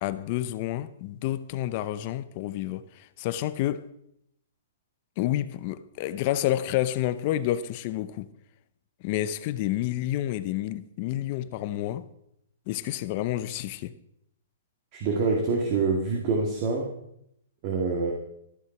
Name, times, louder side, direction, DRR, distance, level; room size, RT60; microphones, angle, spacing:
voice 1, 0.0-3.8 5.2-8.3 9.0-12.1 12.7-13.9, left 13 dB, 35° left, 0.7 m, -29 dB
voice 2, 14.9-16.9 17.6-18.1, right 4 dB, 30° right, 2.0 m, -26 dB
13.5 x 9.9 x 5.9 m
hypercardioid pair, 165°, 0 cm